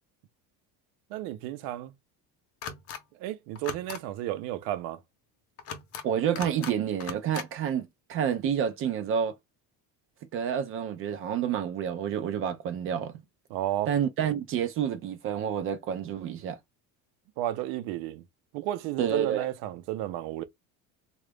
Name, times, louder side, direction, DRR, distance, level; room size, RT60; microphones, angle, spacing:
voice 1, 1.1-1.9 3.2-5.0 13.5-13.9 17.4-18.2 18.5-20.4, right 13 dB, 80° right, 0.7 m, -32 dB
sound 1, 2.6-3.0 3.6-4.0 5.6-6.1 6.4-6.7 7.0-7.5, left 6 dB, 40° left, 0.7 m, -38 dB
voice 2, 6.0-9.3 10.3-13.1 13.9-16.6 19.0-19.5, right 8 dB, 35° right, 0.4 m, -29 dB
3.8 x 2.4 x 3.3 m
cardioid pair, 180°, 38 cm